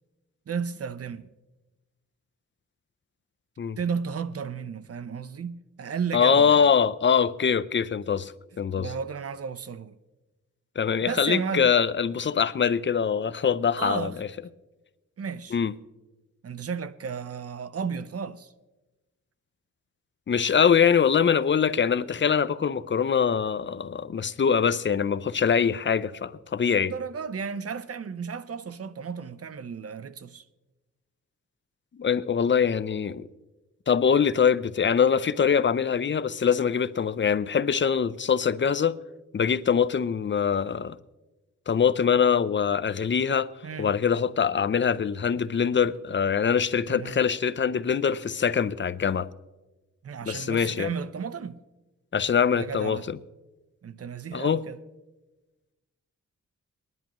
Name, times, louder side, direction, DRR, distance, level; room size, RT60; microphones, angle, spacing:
voice 1, 0.5-1.3 3.8-6.7 8.8-10.0 11.0-11.7 13.8-14.2 15.2-15.6 16.4-18.5 26.6-30.5 43.6-43.9 46.9-47.2 50.0-51.6 52.5-53.1 53.8-54.8, right 6 dB, 50° right, 0.6 m, -33 dB
voice 2, 6.1-8.3 8.6-8.9 10.8-14.3 15.5-15.7 20.3-26.9 31.9-33.3 33.9-39.0 39.3-41.0 41.7-43.5 43.8-49.3 50.3-50.9 52.1-53.2 54.3-54.6, left 7 dB, 40° left, 0.5 m, -23 dB
21.5 x 10.5 x 3.0 m
cardioid pair, 75°, 31 cm